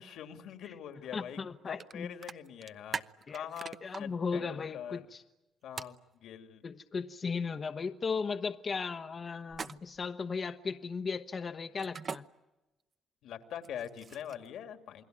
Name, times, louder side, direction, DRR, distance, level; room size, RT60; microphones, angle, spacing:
voice 1, 0.0-1.4 1.6-3.0 3.3-5.1 5.6-6.6 13.2-15.0, left 9 dB, 80° left, 7 dB, 2.6 m, -43 dB
voice 2, 1.1-2.1 3.3-3.5 3.8-5.2 6.6-12.3, left 5 dB, 40° left, 8 dB, 1.0 m, -36 dB
sound 1, 1.8-1.9 2.2-4.0 5.8-6.0 9.5-10.1 11.8-12.2 13.6-14.5, right 5 dB, 40° right, 0.9 m, -40 dB
28.5 x 21.5 x 9.4 m, 1.1 s
cardioid pair, 90°, 0 cm